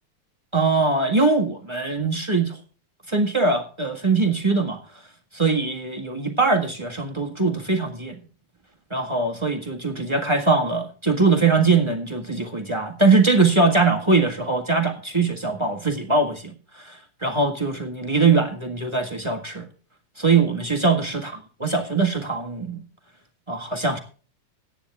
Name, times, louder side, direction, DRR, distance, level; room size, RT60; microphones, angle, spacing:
voice 1, 0.5-2.6 3.1-4.8 5.3-8.2 8.9-19.7 20.2-21.3 21.6-22.8 23.5-24.0, right 3 dB, 20° right, 4 dB, 0.8 m, -22 dB
14.0 x 10.0 x 3.5 m, 0.38 s
omnidirectional pair, 3.4 m